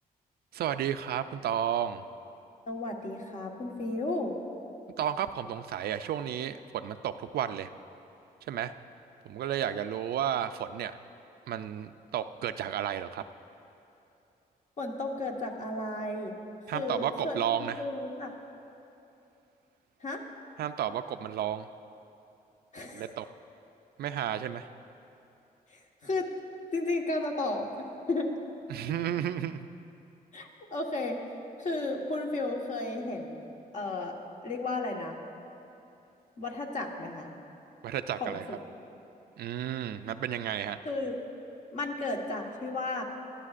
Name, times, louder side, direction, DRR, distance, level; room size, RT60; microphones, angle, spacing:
voice 1, 0.5-2.0 5.0-7.7 8.5-8.7 9.3-10.9 11.5-13.2 16.7-17.8 20.6-21.7 22.9-23.2 24.0-24.7 28.7-29.6 37.8-38.5 39.4-40.8, right 10 dB, 85° right, 10 dB, 0.4 m, -32 dB
voice 2, 2.7-4.3 14.8-16.3 16.7-18.4 20.0-20.2 22.7-23.3 25.7-26.3 26.7-27.7 28.1-28.3 30.3-31.2 31.6-33.4 33.7-34.1 34.4-35.2 36.4-37.3 38.2-38.6 40.8-41.2 41.7-43.0, left 2 dB, 50° left, 1 dB, 1.4 m, -33 dB
19.5 x 12.5 x 2.5 m, 2.8 s
cardioid pair, 100°, 16 cm